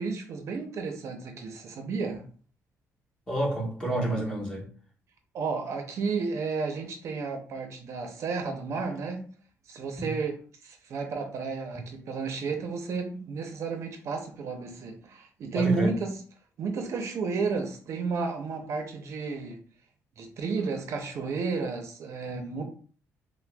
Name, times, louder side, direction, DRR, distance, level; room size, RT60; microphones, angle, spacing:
voice 1, 0.0-2.2 5.3-9.2 9.7-10.4 10.6-16.1 16.6-19.6 20.2-22.6, right 4 dB, 60° right, 0.6 m, -32 dB
voice 2, 3.3-4.7 10.0-10.1 15.5-15.9, right 1 dB, 15° left, 1.3 m, -29 dB
5.8 x 2.2 x 2.3 m
cardioid pair, 120°, 5 cm